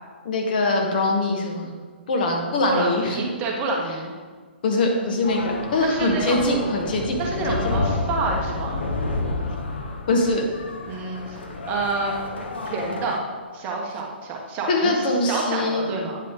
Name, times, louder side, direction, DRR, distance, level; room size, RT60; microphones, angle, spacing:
voice 1, 0.2-1.7 2.1-3.2 4.6-7.2 7.5-7.7 10.1-10.4 14.7-15.9, left 2 dB, 50° left, 1 dB, 1.4 m, -22 dB
voice 2, 2.7-4.1 5.8-6.4 7.2-8.8 10.9-11.4 11.7-12.1 12.6-13.2 13.5-16.2, right 3 dB, 25° right, -1 dB, 1.3 m, -28 dB
sound 1, 5.2-13.2, left 3 dB, 70° left, 1.1 m, -30 dB
9.2 x 5.1 x 3.7 m, 1.5 s
figure-of-eight pair, 125°, 6 cm